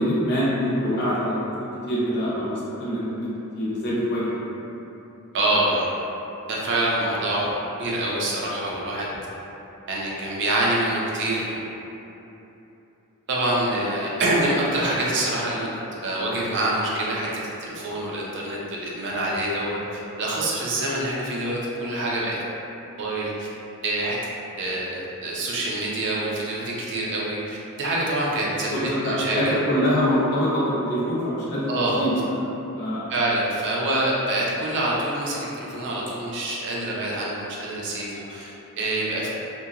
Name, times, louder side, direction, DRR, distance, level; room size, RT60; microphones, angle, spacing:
voice 1, 0.0-3.3 3.5-4.6 5.5-5.7 28.6-32.4 32.7-33.1, equal, 50° left, -8 dB, 0.5 m, -25 dB
voice 2, 5.3-5.9 6.5-9.1 9.9-11.6 13.3-15.7 16.0-17.3 17.6-19.8 20.2-22.4 23.0-23.5 23.8-24.2 24.6-29.4 31.7-32.0 33.1-39.3, right 1 dB, 55° right, -5 dB, 0.5 m, -26 dB
2.8 x 2.2 x 2.4 m, 3.0 s
head